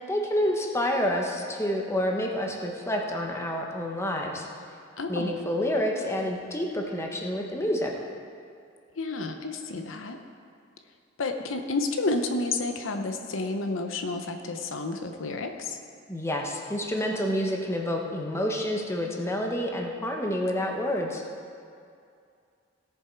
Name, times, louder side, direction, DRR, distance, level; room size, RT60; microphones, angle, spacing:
voice 1, 0.1-4.4 5.1-7.9 16.1-21.2, equal, 15° left, 1 dB, 1.1 m, -28 dB
voice 2, 5.0-5.4 9.0-10.2 11.2-15.8, left 3 dB, 80° left, 5 dB, 0.8 m, -30 dB
17.0 x 7.2 x 4.6 m, 2.4 s
head